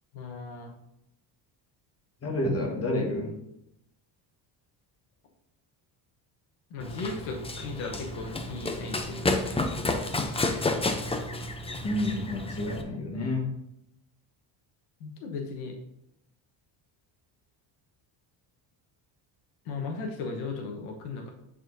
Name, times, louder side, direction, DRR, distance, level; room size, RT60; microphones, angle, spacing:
voice 1, 0.1-0.7 6.7-9.6 15.0-15.7 19.7-21.3, left 4 dB, 90° left, 2 dB, 1.2 m, -36 dB
voice 2, 2.2-3.3 11.8-13.5, left 1 dB, 30° left, 1 dB, 1.5 m, -29 dB
Run, 6.8-12.8, left 2 dB, 15° left, 0.5 m, -31 dB
9.0 x 4.2 x 2.7 m, 0.81 s
cardioid pair, 115°, 48 cm